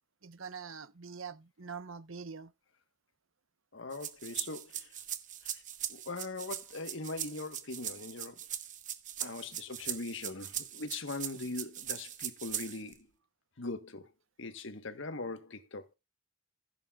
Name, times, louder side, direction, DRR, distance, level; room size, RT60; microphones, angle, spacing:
voice 1, 0.2-2.5, right 5 dB, 80° right, 1.0 m, -44 dB
voice 2, 3.7-4.9 5.5-5.6 5.9-8.4 9.2-13.1 13.6-14.1 14.4-15.9, left 3 dB, 65° left, 1.3 m, -41 dB
sound 1, 3.9-13.0, right 10 dB, 40° right, 1.0 m, -40 dB
15.5 x 8.1 x 2.4 m
head